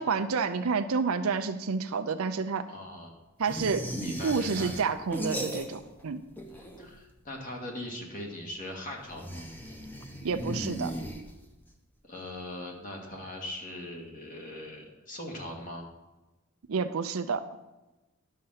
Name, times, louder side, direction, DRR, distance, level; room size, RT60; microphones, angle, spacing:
voice 1, 0.0-2.6 3.4-3.9 4.2-6.2 10.2-10.9 16.7-17.4, right 5 dB, 85° right, 7 dB, 0.6 m, -29 dB
voice 2, 2.7-3.1 4.0-4.7 6.5-9.4 12.1-15.8, left 1 dB, 40° left, 0 dB, 2.0 m, -40 dB
sound 1, 3.4-6.0 6.3-7.1 9.1-11.6, equal, 10° left, 0.9 m, -37 dB
10.0 x 6.5 x 5.7 m, 1.1 s
head